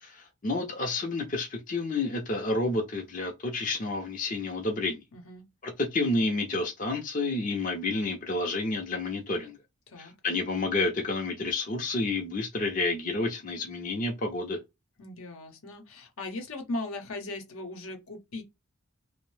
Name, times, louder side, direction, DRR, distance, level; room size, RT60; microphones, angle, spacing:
voice 1, 0.0-5.0 5.6-9.6 10.0-14.6, left 2 dB, 35° left, 0.5 m, -30 dB
voice 2, 5.1-5.5 9.9-10.1 15.0-18.4, left 2 dB, 75° left, 0.8 m, -38 dB
2.6 x 2.0 x 3.1 m
head